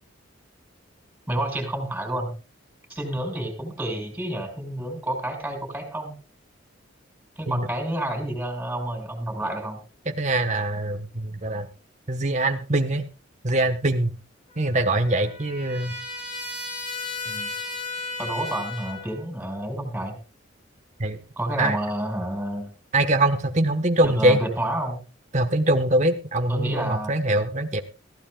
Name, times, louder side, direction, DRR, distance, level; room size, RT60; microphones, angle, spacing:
voice 1, 1.3-2.3 2.9-6.2 7.4-9.8 17.2-17.5 18.2-20.2 21.4-22.7 24.0-25.0 26.5-27.1, right 1 dB, 10° right, 4 dB, 5.5 m, -29 dB
voice 2, 10.1-11.7 12.1-13.1 13.4-14.1 14.6-15.9 21.0-21.2 21.6-21.8 22.9-24.4 25.3-27.8, right 1 dB, 35° right, 7 dB, 1.1 m, -23 dB
Trumpet, 14.5-19.2, left 3 dB, 35° left, 6.0 m, -35 dB
21.5 x 15.5 x 2.3 m, 0.32 s
head